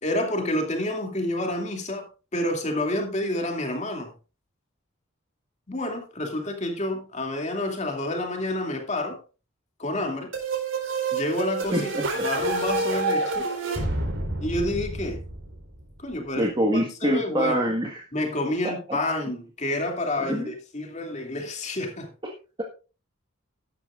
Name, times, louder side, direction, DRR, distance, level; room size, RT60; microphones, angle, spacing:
voice 1, 0.0-2.1 2.3-4.1 5.7-9.2 9.8-10.3 11.1-13.5 14.4-15.2 16.0-16.5 16.7-17.7 18.1-22.1, left 1 dB, 35° left, 2.6 m, -29 dB
sound 1, 10.3-16.0, right 3 dB, 60° right, 3.9 m, -28 dB
voice 2, 11.7-12.3 16.4-18.0 18.6-19.0 20.2-20.5 22.2-22.3, right 1 dB, 20° right, 1.6 m, -26 dB
14.0 x 11.5 x 2.5 m
head